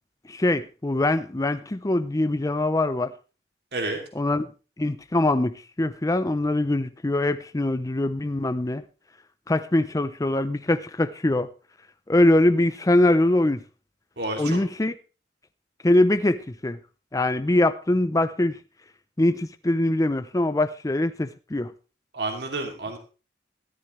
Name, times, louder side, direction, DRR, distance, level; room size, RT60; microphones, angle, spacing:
voice 1, 0.3-3.1 4.2-4.5 4.8-8.8 9.5-11.5 12.1-13.6 14.4-14.9 15.8-16.8 17.1-18.6 19.2-21.7, left 1 dB, 20° left, 0.5 m, -23 dB
voice 2, 14.2-14.6 22.1-23.0, right 2 dB, 65° right, 2.8 m, -30 dB
13.5 x 13.5 x 3.2 m
head